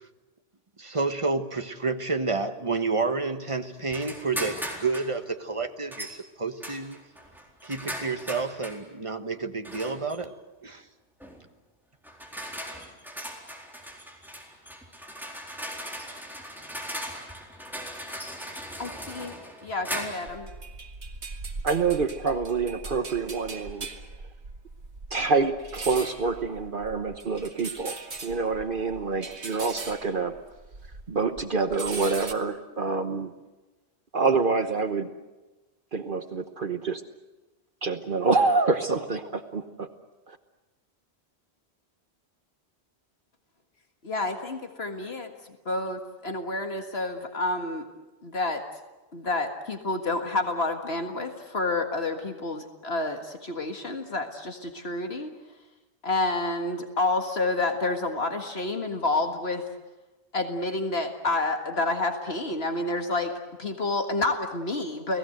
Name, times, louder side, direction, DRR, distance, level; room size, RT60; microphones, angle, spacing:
voice 1, 0.8-7.0 7.6-10.3 10.6-10.8, right 4 dB, 30° right, 7 dB, 1.4 m, -30 dB
sound 1, 3.9-5.1 5.9-6.2 6.6-8.8 9.6-10.2 11.2-11.4 12.0-20.4, equal, ahead, 4.1 m, -38 dB
voice 2, 18.8-19.4 19.6-20.5 44.0-45.3 45.7-47.9 48.2-48.6 49.1-55.4 56.0-59.7 60.3-63.3 63.6-65.2, left 2 dB, 70° left, 5 dB, 2.0 m, -29 dB
sound 2, 20.3-31.1 31.4-32.3, right 3 dB, 85° right, 2.2 m, -40 dB
voice 3, 21.6-23.9 25.1-30.3 31.1-33.3 34.1-35.1 35.9-37.0 37.8-39.9 40.3-40.4, right 4 dB, 55° right, 8 dB, 1.2 m, -26 dB
29.5 x 18.5 x 7.9 m, 1.1 s
omnidirectional pair, 1.1 m